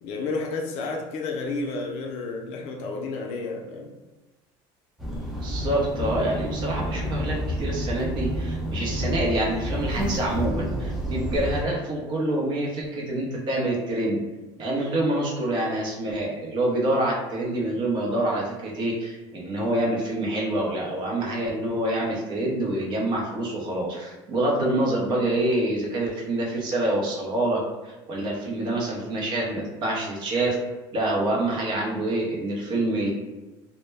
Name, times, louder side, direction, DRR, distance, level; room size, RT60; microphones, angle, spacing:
voice 1, 0.0-3.9, left 3 dB, 70° left, 1 dB, 0.5 m, -31 dB
sound 1, 5.0-11.6, equal, ahead, 0.4 m, -29 dB
voice 2, 5.4-14.2 14.6-30.6 30.9-33.1, right 1 dB, 40° right, -2 dB, 0.6 m, -26 dB
2.1 x 2.0 x 3.3 m, 1.1 s
cardioid pair, 150°, 11 cm